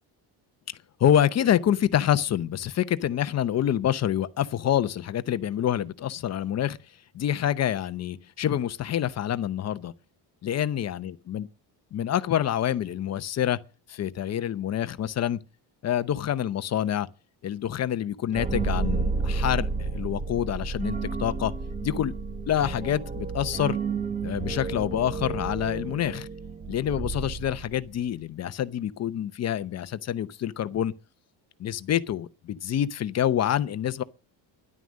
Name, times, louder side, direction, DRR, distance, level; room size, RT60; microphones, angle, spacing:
voice 1, 1.0-6.8 7.1-9.9 10.4-11.4 11.9-13.6 13.9-15.4 15.8-17.1 17.4-21.5 21.8-22.1 22.5-23.8 24.2-26.3 26.7-30.9 31.6-34.0, left 10 dB, 35° left, 0.7 m, -27 dB
sound 1, 18.3-28.0, right 4 dB, 15° right, 0.8 m, -31 dB
13.0 x 11.0 x 6.3 m
cardioid pair, 160°, 44 cm